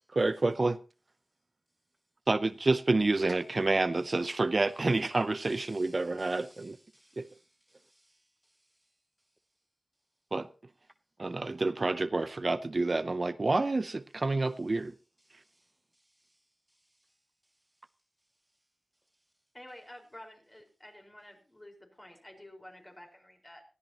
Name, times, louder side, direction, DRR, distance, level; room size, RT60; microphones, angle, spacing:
voice 1, 0.1-0.8 2.3-6.8 7.2-7.3 10.3-10.5 11.2-14.9, right 3 dB, 50° right, 0.6 m, -28 dB
voice 2, 5.4-8.6 15.3-15.7 16.0-16.4, right 1 dB, 15° right, 0.6 m, -62 dB
voice 3, 19.5-23.6, left 1 dB, 25° left, 4.7 m, -51 dB
19.0 x 14.0 x 2.9 m
cardioid pair, 45°, 0 cm